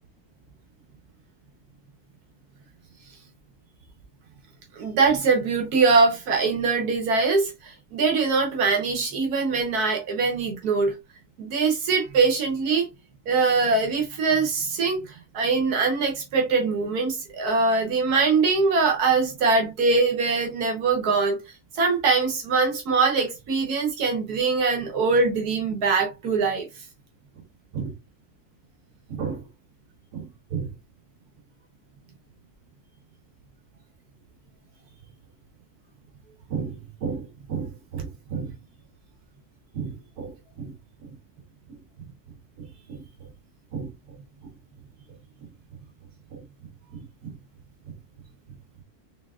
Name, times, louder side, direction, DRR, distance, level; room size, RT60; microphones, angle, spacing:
voice 1, 4.8-10.9 11.4-12.9 13.3-21.4 21.7-26.7 27.7-27.9 29.1-29.4 30.1-30.3 30.5-30.7 36.5-36.7 37.0-37.2 37.5-38.5 39.7-40.3 40.6-40.7 42.9-43.0 43.7-43.9 47.2-47.3, right 4 dB, 80° right, 1.5 m, -23 dB
4.4 x 3.5 x 2.3 m
omnidirectional pair, 1.6 m